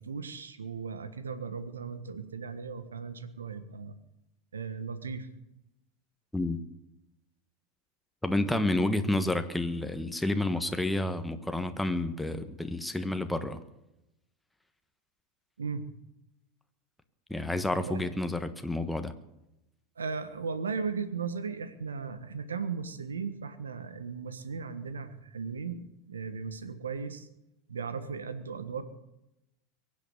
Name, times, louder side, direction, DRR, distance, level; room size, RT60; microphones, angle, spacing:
voice 1, 0.0-3.9 4.5-5.3 15.6-15.9 17.8-18.0 20.0-27.3 27.7-28.8, right 5 dB, 80° right, 12 dB, 1.4 m, -37 dB
voice 2, 8.2-13.6 17.3-19.1, left 1 dB, 5° left, 8 dB, 1.3 m, -30 dB
23.0 x 8.5 x 6.7 m, 0.89 s
figure-of-eight pair, 85°, 0 cm